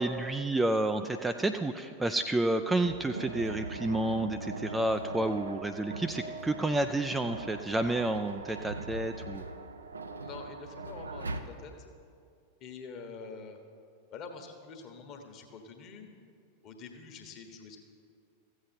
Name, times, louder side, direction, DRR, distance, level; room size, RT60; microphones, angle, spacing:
voice 1, 0.0-9.4, right 2 dB, 10° right, 7 dB, 0.4 m, -30 dB
sound 1, 2.8-11.4, right 3 dB, 75° right, 0.5 m, -40 dB
voice 2, 10.2-11.9 12.6-13.6 14.1-16.1 16.6-17.8, left 4 dB, 35° left, 4 dB, 1.3 m, -46 dB
14.5 x 7.9 x 4.4 m, 2.3 s
figure-of-eight pair, 90°, 0 cm